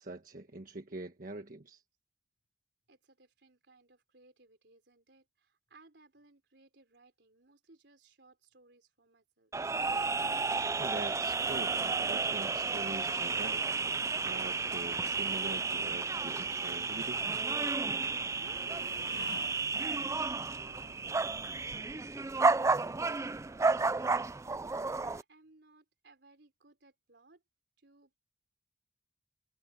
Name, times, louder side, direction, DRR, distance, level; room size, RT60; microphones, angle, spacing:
voice 1, 0.0-1.8 10.8-13.6 14.2-17.3, right 2 dB, 50° right, 1.4 m, -43 dB
voice 2, 2.9-9.5 17.8-24.3 24.5-27.4 27.8-28.2, right 2 dB, 70° right, 4.5 m, -62 dB
sound 1, 9.5-25.2, right 4 dB, 15° right, 0.4 m, -32 dB
sound 2, 15.8-23.2, left 3 dB, 75° left, 1.9 m, -55 dB
head